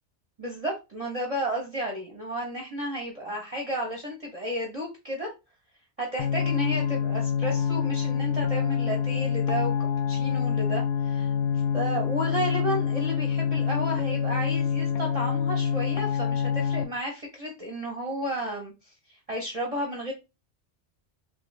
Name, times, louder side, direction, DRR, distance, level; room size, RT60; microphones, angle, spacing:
voice 1, 0.4-5.3 6.0-9.7 10.1-11.3 11.7-18.7 19.3-20.1, equal, 35° right, -1 dB, 0.8 m, -32 dB
sound 1, 6.2-16.8, left 7 dB, 75° left, 0.9 m, -26 dB
3.0 x 2.5 x 3.2 m, 0.26 s
omnidirectional pair, 1.2 m